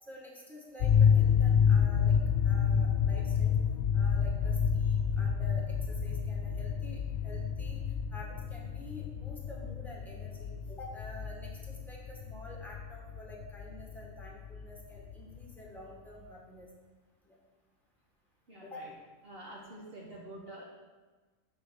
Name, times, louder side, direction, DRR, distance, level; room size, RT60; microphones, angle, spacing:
voice 1, 0.0-3.5 3.9-7.8 8.1-16.7 17.3-17.4 18.6-18.8, left 1 dB, ahead, -3 dB, 1.6 m, -49 dB
sound 1, 0.8-15.7, left 7 dB, 60° left, 0.8 m, -29 dB
voice 2, 18.5-18.8 19.3-20.6, right 1 dB, 45° right, -4 dB, 1.4 m, -47 dB
6.6 x 5.3 x 6.5 m, 1.3 s
omnidirectional pair, 1.4 m